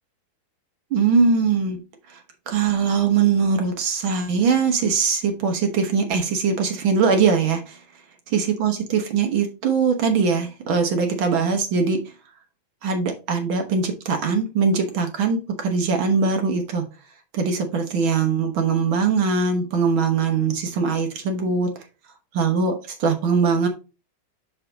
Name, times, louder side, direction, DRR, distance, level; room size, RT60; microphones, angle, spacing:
voice 1, 0.9-1.8 2.1-2.2 2.5-7.8 8.3-12.1 12.8-16.8 17.3-21.7 22.3-23.7, right 5 dB, 60° right, 5 dB, 1.4 m, -21 dB
5.7 x 5.7 x 4.0 m, 0.31 s
omnidirectional pair, 3.4 m